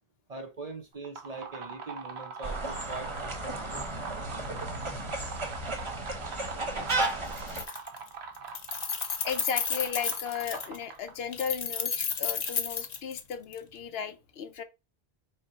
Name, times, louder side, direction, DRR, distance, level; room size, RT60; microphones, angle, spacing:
voice 1, 0.3-3.6, right 3 dB, 45° right, 0.6 m, -42 dB
sound 1, 0.9-11.3, right 5 dB, 75° right, 1.0 m, -43 dB
sound 2, 2.4-7.6, right 2 dB, 30° right, 0.9 m, -34 dB
Keys jangling, 6.9-7.0 7.3-8.1 8.4-10.8 11.3-13.6, left 6 dB, 45° left, 0.6 m, -32 dB
voice 2, 9.2-14.6, left 7 dB, 70° left, 0.8 m, -35 dB
5.2 x 2.1 x 4.2 m
omnidirectional pair, 1.1 m